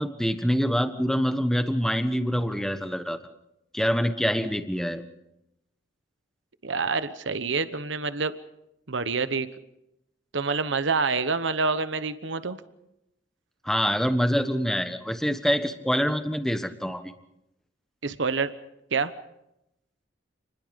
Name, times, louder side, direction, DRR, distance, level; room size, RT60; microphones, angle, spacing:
voice 1, 0.0-3.2 3.7-5.0 13.6-17.1, equal, ahead, 8 dB, 1.3 m, -25 dB
voice 2, 6.6-8.3 8.9-9.5 10.3-12.6 18.0-18.5 18.9-19.1, right 4 dB, 75° right, 12 dB, 1.1 m, -27 dB
28.5 x 21.0 x 5.2 m, 0.85 s
head